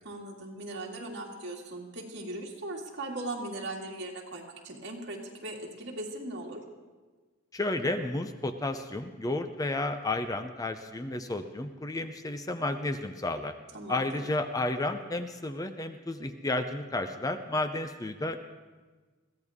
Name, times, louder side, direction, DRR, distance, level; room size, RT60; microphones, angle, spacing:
voice 1, 0.0-6.6 13.7-14.3, right 2 dB, 60° right, -1 dB, 2.5 m, -39 dB
voice 2, 7.5-13.5 13.9-18.4, left 2 dB, 20° left, 8 dB, 0.6 m, -32 dB
22.0 x 15.5 x 3.6 m, 1.3 s
head